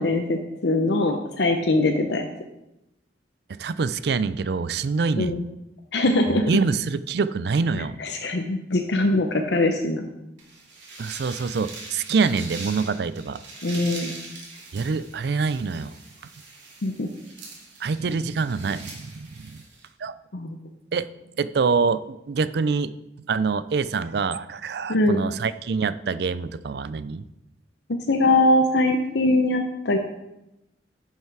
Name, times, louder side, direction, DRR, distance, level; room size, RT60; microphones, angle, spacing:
voice 1, 0.0-2.3 5.2-5.4 5.9-6.5 8.0-10.1 13.6-14.1 16.8-17.1 20.3-20.6 24.9-25.2 27.9-30.0, left 2 dB, 65° left, 4 dB, 0.7 m, -22 dB
voice 2, 3.5-5.3 6.3-7.9 11.0-13.4 14.7-15.9 17.8-19.6 20.0-20.2 20.9-21.1 21.4-22.9 23.3-27.2, right 4 dB, 60° right, 15 dB, 0.4 m, -25 dB
sound 1, 10.4-19.9, right 3 dB, 80° right, 2.5 m, -42 dB
10.0 x 5.7 x 4.7 m, 0.91 s
head